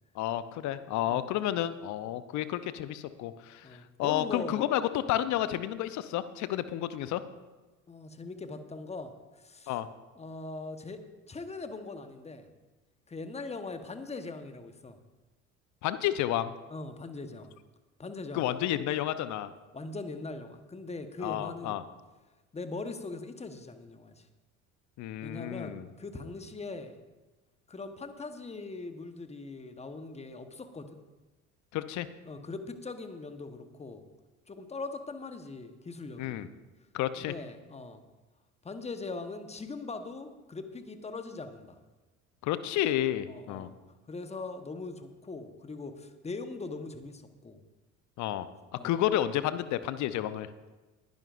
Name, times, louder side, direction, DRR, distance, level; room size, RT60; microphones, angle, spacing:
voice 1, 0.2-3.7 4.0-7.2 9.7-9.9 15.8-16.5 18.3-19.5 21.2-21.8 25.0-25.9 31.7-32.1 36.2-36.5 36.9-37.3 42.4-43.7 48.2-48.5 48.7-50.5, left 12 dB, 45° left, 13 dB, 0.8 m, -31 dB
voice 2, 3.6-4.6 7.9-9.8 10.1-11.0 11.3-12.5 13.1-15.0 16.7-17.5 18.0-18.5 19.7-21.8 22.5-24.3 25.2-27.0 27.7-31.0 32.2-34.0 34.5-36.5 37.2-38.0 38.6-41.7 43.3-43.7 44.1-47.6 48.7-48.9, left 3 dB, 15° left, 8 dB, 1.1 m, -41 dB
20.0 x 10.5 x 2.6 m, 1.2 s
figure-of-eight pair, 65°, 41 cm